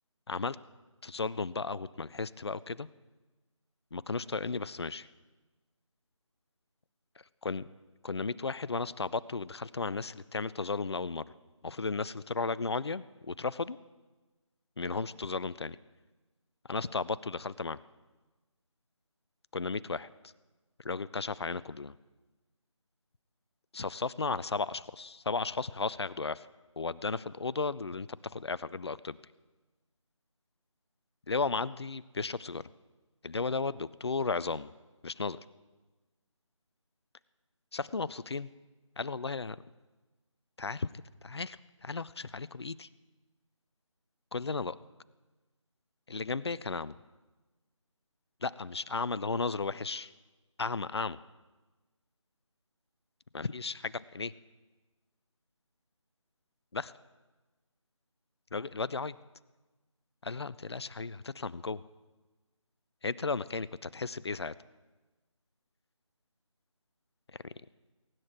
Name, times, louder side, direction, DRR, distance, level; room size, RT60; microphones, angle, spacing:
voice 1, 1.0-2.9 3.9-5.1 7.4-7.7 8.0-11.3 11.6-13.8 14.8-15.8 16.7-17.8 19.5-20.1 20.8-21.9 23.7-26.5 26.8-29.2 31.3-32.6 33.2-34.7 35.0-35.4 37.7-38.5 39.0-39.6 40.6-40.9 41.2-42.9 44.3-44.8 46.1-46.9 48.4-50.1 50.6-51.2 53.3-54.3 56.7-56.9 58.5-59.2 60.2-61.8 63.0-64.5 67.4-67.5, left 4 dB, 55° left, 18 dB, 0.5 m, -34 dB
23.0 x 10.5 x 4.5 m, 1.2 s
figure-of-eight pair, 160°, 17 cm